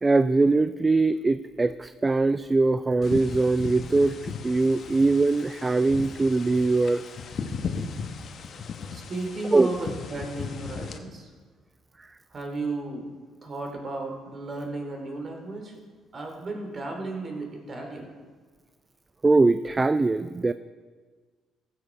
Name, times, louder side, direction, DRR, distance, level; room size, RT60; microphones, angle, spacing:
voice 1, 0.0-7.0 9.5-9.7 19.2-20.5, right 3 dB, 25° right, 12 dB, 0.4 m, -22 dB
sound 1, 3.0-11.0, left 5 dB, 55° left, 1.0 m, -37 dB
voice 2, 8.9-11.3 12.3-13.1 13.4-15.7 16.1-18.1, right 2 dB, 45° right, 2 dB, 2.7 m, -34 dB
15.5 x 6.4 x 4.7 m, 1.5 s
hypercardioid pair, 55°, 0 cm